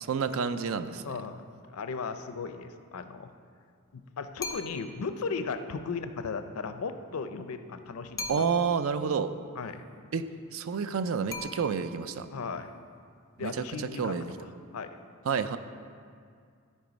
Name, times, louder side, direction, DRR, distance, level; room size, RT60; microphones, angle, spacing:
voice 1, 0.0-1.2 8.3-9.3 10.1-10.2 10.5-12.3 13.4-14.3 15.3-15.6, right 6 dB, 70° right, 11 dB, 0.4 m, -29 dB
voice 2, 1.0-1.4 1.7-3.3 3.9-8.5 9.6-9.8 12.3-12.7 13.4-14.2 14.7-14.9, left 5 dB, 75° left, 9 dB, 0.5 m, -36 dB
sound 1, 4.4-5.0 8.2-8.9 11.3-12.1, left 2 dB, 15° left, 0.5 m, -40 dB
12.5 x 4.4 x 5.1 m, 2.2 s
head